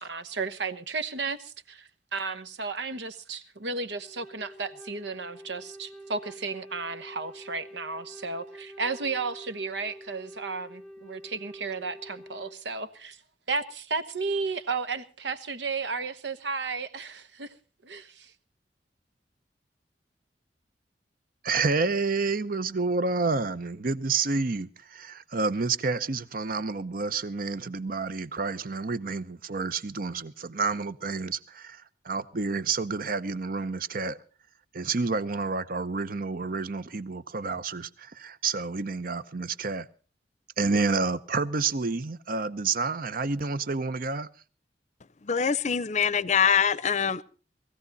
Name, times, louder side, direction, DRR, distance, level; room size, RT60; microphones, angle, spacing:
voice 1, 0.0-13.2 13.5-17.6 17.8-18.3, right 4 dB, 85° right, 1.2 m, -33 dB
Wind instrument woodwind instrument, 4.0-12.6, right 1 dB, 5° left, 0.8 m, -47 dB
voice 2, 21.4-34.2 34.7-39.9 40.6-44.3, right 4 dB, 55° right, 0.8 m, -29 dB
voice 3, 45.2-47.2, left 7 dB, 40° left, 0.7 m, -24 dB
19.5 x 15.0 x 4.1 m
head